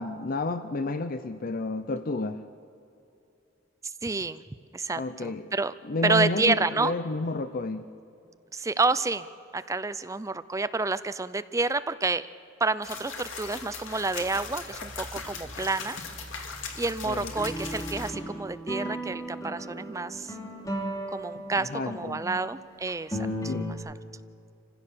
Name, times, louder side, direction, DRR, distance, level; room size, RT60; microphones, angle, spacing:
voice 1, 0.0-2.4 5.0-5.5 5.8-7.9 17.0-17.3 21.6-22.2 23.5-23.8, left 2 dB, 45° left, 11 dB, 0.6 m, -31 dB
voice 2, 3.8-4.4 4.7-5.7 6.0-6.9 8.5-9.3 9.5-12.3 12.6-16.0 16.8-20.3 21.1-23.2 23.7-23.9, right 3 dB, 15° right, 14 dB, 0.5 m, -29 dB
sound 1, 12.8-18.1, left 4 dB, 85° left, 2.4 m, -39 dB
sound 2, 17.3-22.4 22.9-23.7, equal, 20° left, 2.7 m, -35 dB
27.0 x 15.5 x 6.8 m, 2.7 s
head